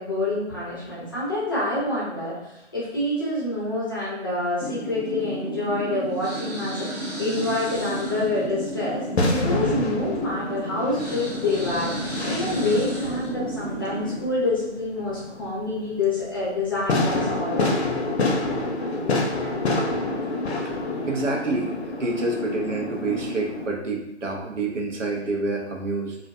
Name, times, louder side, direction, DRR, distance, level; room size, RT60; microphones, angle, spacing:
voice 1, 0.0-17.7, left 2 dB, 20° left, -9 dB, 0.5 m, -27 dB
sound 1, 4.6-14.3, right 2 dB, 35° right, 0.7 m, -33 dB
sound 2, 7.3-23.7, left 2 dB, 65° left, 0.6 m, -28 dB
voice 2, 18.9-26.2, right 3 dB, 85° right, 0 dB, 0.7 m, -29 dB
2.4 x 2.2 x 2.5 m, 0.89 s
figure-of-eight pair, 155°, 36 cm